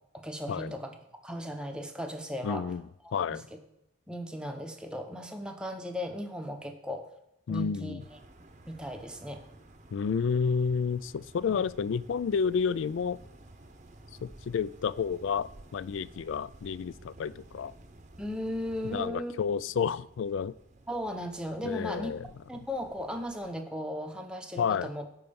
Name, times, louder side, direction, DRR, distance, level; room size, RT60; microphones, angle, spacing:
voice 1, 0.1-0.9 1.2-2.7 3.0-3.4 4.1-7.1 7.5-8.0 8.7-9.4 11.5-11.6 18.2-19.4 20.9-22.1 22.5-25.1, equal, 5° right, 4 dB, 0.8 m, -36 dB
voice 2, 2.4-2.8 3.1-3.5 7.5-8.0 9.9-13.2 14.2-17.7 18.8-20.5 21.6-22.3 24.6-24.9, left 6 dB, 75° left, 20 dB, 0.3 m, -30 dB
sound 1, 8.0-23.6, right 2 dB, 35° right, 0.8 m, -53 dB
11.0 x 4.5 x 6.9 m, 0.82 s
head